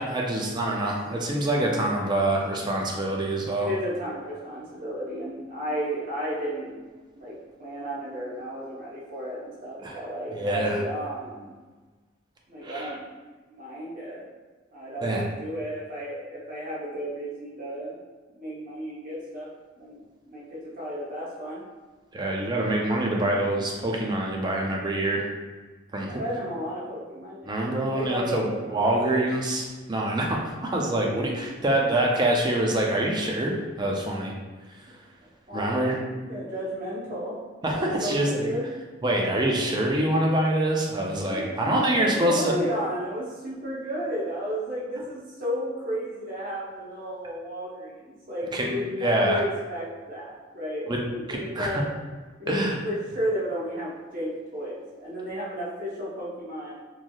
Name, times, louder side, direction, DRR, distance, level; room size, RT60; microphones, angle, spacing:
voice 1, 0.0-3.7 9.8-10.0 10.3-10.8 12.6-13.0 15.0-15.2 22.1-25.3 25.9-26.2 27.4-34.3 34.7-34.8 35.5-36.0 37.6-38.5 39.0-42.6 48.5-48.7 49.0-49.4 50.9-51.0 51.3-51.8 52.5-52.8, right 1 dB, 20° right, -1 dB, 0.4 m, -25 dB
voice 2, 3.6-6.7 7.2-11.5 12.5-13.0 13.5-14.3 14.7-17.9 18.4-19.5 19.8-21.6 26.1-29.3 34.9-35.0 35.5-37.4 37.7-38.7 39.2-39.5 41.1-50.9 51.3-51.9 52.4-56.8, equal, 45° right, -6 dB, 0.8 m, -33 dB
3.0 x 2.6 x 2.3 m, 1.3 s
head